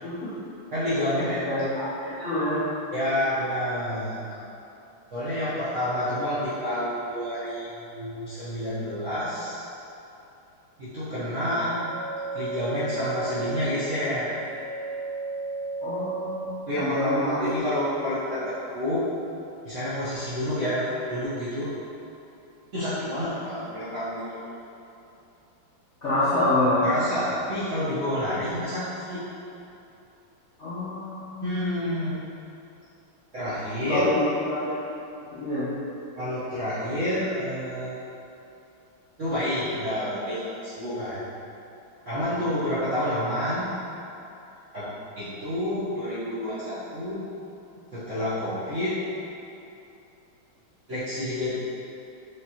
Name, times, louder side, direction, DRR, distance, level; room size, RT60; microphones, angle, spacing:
voice 1, 0.0-0.3 1.5-2.6 15.8-17.4 26.0-26.8 30.6-31.5 33.9-34.7 35.3-35.7, left 1 dB, 50° left, -12 dB, 0.9 m, -27 dB
voice 2, 0.7-1.4 2.9-4.2 5.1-9.6 10.8-11.7 12.3-14.3 16.7-19.1 19.6-21.7 22.7-24.3 26.8-29.3 31.4-32.2 33.3-34.1 36.2-37.9 39.2-41.3 42.1-43.8 44.7-44.9 45.2-47.3 47.9-49.1 50.9-51.5, left 1 dB, 55° right, -14 dB, 0.9 m, -29 dB
sound 1, 11.7-16.6, right 3 dB, 85° left, 1.5 m, -34 dB
5.2 x 3.1 x 2.8 m, 2.8 s
omnidirectional pair, 2.4 m